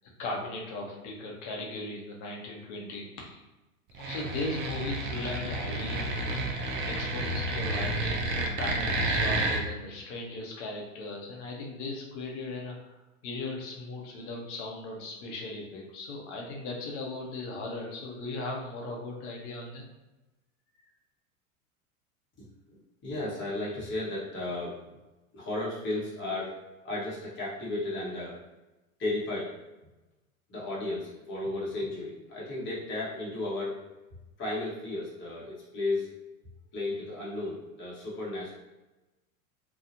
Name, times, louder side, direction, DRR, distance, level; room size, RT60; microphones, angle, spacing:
voice 1, 0.2-3.4 4.0-13.0 13.2-19.8, left 2 dB, 55° left, -1 dB, 0.9 m, -38 dB
sound 1, 3.9-9.6, right 2 dB, 25° right, 0.4 m, -30 dB
voice 2, 22.4-24.8 25.3-26.6 26.8-28.4 29.0-29.5 30.5-33.8 34.4-36.1 36.7-38.5, left 2 dB, 25° left, -7 dB, 1.1 m, -34 dB
2.8 x 2.3 x 2.6 m, 1.0 s
hypercardioid pair, 95°, 42 cm